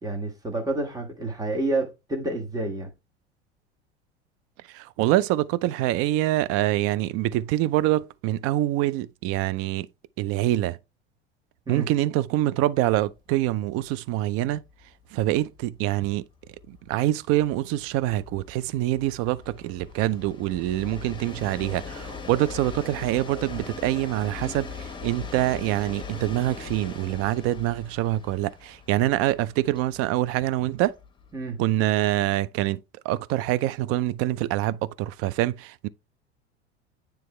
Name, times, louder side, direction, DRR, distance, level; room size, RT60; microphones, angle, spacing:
voice 1, 0.0-2.9 11.7-11.9 31.3-31.6, right 2 dB, 10° right, 1.5 m, -29 dB
voice 2, 4.7-9.9 10.2-10.8 11.7-14.6 15.1-16.3 16.7-30.9 31.6-35.9, right 15 dB, 45° right, 0.5 m, -25 dB
Train, 13.4-13.5 13.9-14.0 14.2-31.6, left 5 dB, 15° left, 1.3 m, -41 dB
9.3 x 3.4 x 3.1 m
figure-of-eight pair, 80°, 33 cm